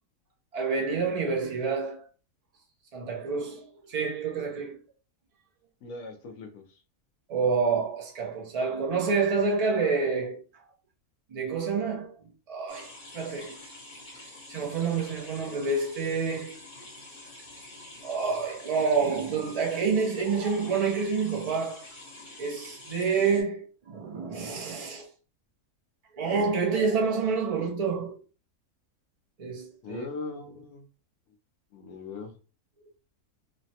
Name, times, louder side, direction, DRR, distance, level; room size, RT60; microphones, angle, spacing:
voice 1, 0.5-2.1 2.9-4.8 7.3-10.4 11.3-12.1 12.5-13.6 14.5-16.6 18.0-21.8 22.4-25.1 26.1-28.1 29.4-30.0, right 5 dB, 75° right, 0.3 m, -28 dB
voice 2, 5.8-6.8 29.8-30.8 31.7-32.3, left 4 dB, 70° left, 0.9 m, -40 dB
sound 1, 12.7-23.4, left 2 dB, 55° left, 1.4 m, -47 dB
3.1 x 2.1 x 2.7 m
omnidirectional pair, 1.6 m